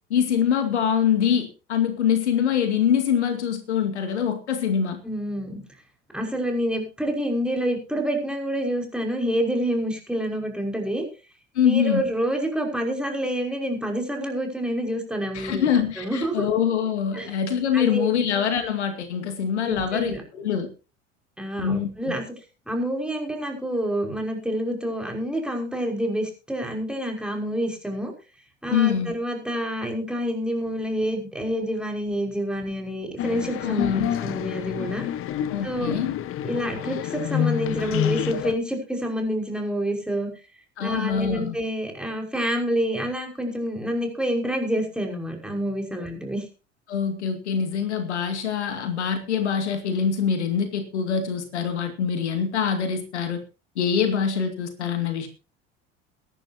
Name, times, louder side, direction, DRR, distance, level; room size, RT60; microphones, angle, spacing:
voice 1, 0.1-5.0 11.5-12.0 15.3-20.7 21.6-22.1 28.7-29.1 33.6-34.1 35.5-36.1 40.8-41.6 46.9-53.4 53.8-55.3, left 8 dB, 70° left, 2.4 m, -24 dB
voice 2, 5.0-5.6 6.1-11.1 11.6-15.7 16.0-16.5 17.1-17.3 17.7-18.2 19.6-20.2 21.4-22.2 22.7-28.1 28.6-35.0 35.6-36.0 36.4-40.3 40.8-46.4, equal, 5° right, 5.6 m, -28 dB
sound 1, 33.2-38.5, left 11 dB, 40° left, 1.3 m, -28 dB
22.5 x 11.5 x 2.9 m
figure-of-eight pair, 70°, 35 cm